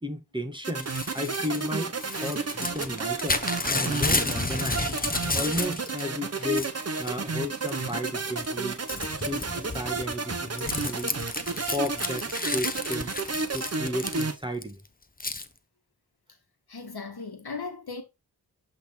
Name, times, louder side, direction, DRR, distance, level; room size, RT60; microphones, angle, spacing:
voice 1, 0.0-4.9 5.3-6.7 7.0-8.8 9.1-11.2 11.6-13.1 13.5-14.8, left 1 dB, 10° right, 1.4 m, -34 dB
sound 1, 0.6-14.3, right 4 dB, 35° right, 0.9 m, -32 dB
Crumpling crinkling / Tearing, 0.8-6.0 6.4-7.1 7.7-8.1 8.4-14.6 15.2-15.5, left 3 dB, 20° left, 0.9 m, -31 dB
voice 2, 16.7-18.0, left 4 dB, 65° left, 1.5 m, -37 dB
7.8 x 3.6 x 4.3 m
cardioid pair, 40°, 41 cm